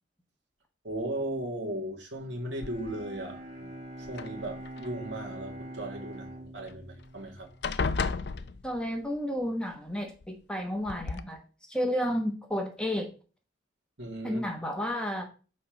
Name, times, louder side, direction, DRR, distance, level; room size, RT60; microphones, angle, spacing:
voice 1, 0.8-3.4 4.0-7.5 14.0-14.4, right 1 dB, 75° right, 2.1 m, -36 dB
Bowed string instrument, 2.5-8.5, right 1 dB, 40° right, 2.0 m, -44 dB
sound 1, 2.6-3.2 4.0-4.9 6.7-6.8 7.1-7.3 7.6-9.1 10.2-10.3 10.9-11.2, left 4 dB, 65° left, 0.5 m, -33 dB
voice 2, 8.6-11.4 11.7-13.1 14.2-15.2, equal, 5° left, 1.1 m, -31 dB
7.8 x 4.2 x 5.2 m
head